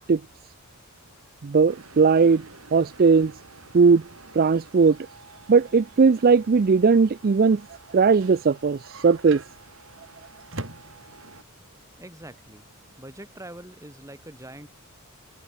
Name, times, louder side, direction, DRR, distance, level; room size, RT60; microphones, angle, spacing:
voice 1, 1.4-2.4 2.7-3.3 3.7-4.0 4.3-5.0 5.5-7.6 7.9-9.4, right 5 dB, 45° right, 0.4 m, -18 dB
sound 1, 1.7-11.4, right 3 dB, 80° right, 6.8 m, -50 dB
sound 2, 8.6-13.9, right 2 dB, 60° right, 4.4 m, -42 dB
voice 2, 12.0-12.7 13.0-14.7, right 1 dB, 15° right, 5.1 m, -43 dB
head